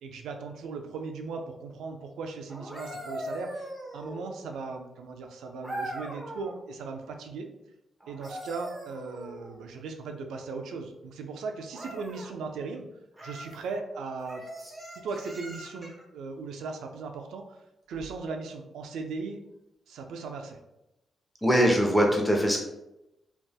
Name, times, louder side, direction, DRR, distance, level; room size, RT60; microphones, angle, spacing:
voice 1, 0.0-7.5 8.1-12.9 13.2-14.4 15.0-17.6 17.9-19.4 19.9-20.6, right 4 dB, 85° right, 4 dB, 0.4 m, -38 dB
sound 1, 2.5-4.5 5.6-6.6 8.0-9.6 11.7-12.3 13.1-13.6 14.2-16.0 17.9-18.1, right 1 dB, 25° right, 1.0 m, -40 dB
voice 2, 21.4-22.6, equal, 5° left, 0 dB, 0.8 m, -22 dB
3.4 x 2.6 x 2.2 m, 0.91 s
cardioid pair, 60°, 0 cm